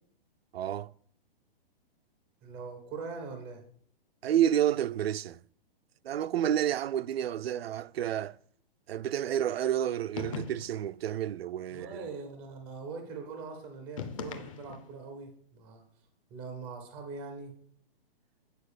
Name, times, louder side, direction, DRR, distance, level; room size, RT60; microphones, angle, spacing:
voice 1, 0.5-0.9 4.2-5.4 6.0-8.4 8.9-12.0, right 10 dB, 80° right, 0.5 m, -30 dB
voice 2, 2.4-3.6 11.7-15.8 16.3-17.6, right 4 dB, 5° right, 0.5 m, -42 dB
sound 1, 10.2-10.9 14.0-15.0, left 5 dB, 35° left, 0.7 m, -40 dB
9.1 x 4.6 x 6.5 m
hypercardioid pair, 175°, 30 cm